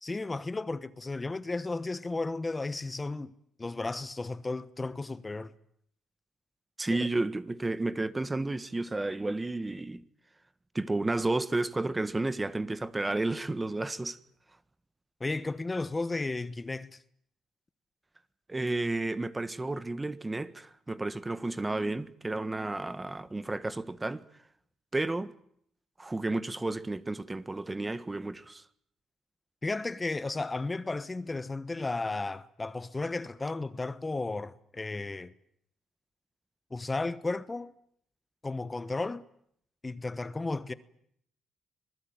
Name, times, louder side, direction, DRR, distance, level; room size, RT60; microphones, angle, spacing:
voice 1, 0.0-3.3 3.6-5.5 6.9-7.1 15.2-17.0 29.6-35.3 36.7-37.7 38.4-39.2 39.8-40.7, left 3 dB, 20° left, 1.1 m, -34 dB
voice 2, 6.8-10.0 10.7-14.2 18.5-24.2 24.9-25.3 26.0-28.6, right 2 dB, 20° right, 1.5 m, -32 dB
25.5 x 20.5 x 9.1 m
cardioid pair, 90°, 0 cm